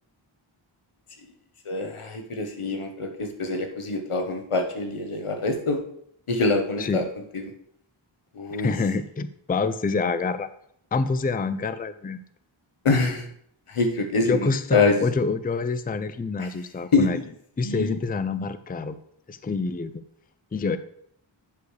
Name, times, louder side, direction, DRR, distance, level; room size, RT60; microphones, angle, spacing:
voice 1, 1.7-5.8 6.3-7.0 7.3-7.4 8.3-8.7 12.8-13.3 13.7-15.0 16.9-17.1 17.6-18.0, left 3 dB, 85° left, 4 dB, 1.2 m, -25 dB
voice 2, 8.6-10.5 10.9-12.2 14.2-17.2 17.6-19.0 19.3-20.0 20.5-20.8, left 4 dB, 20° left, 12 dB, 0.4 m, -26 dB
8.3 x 6.5 x 3.2 m, 0.67 s
wide cardioid pair, 65°, 49 cm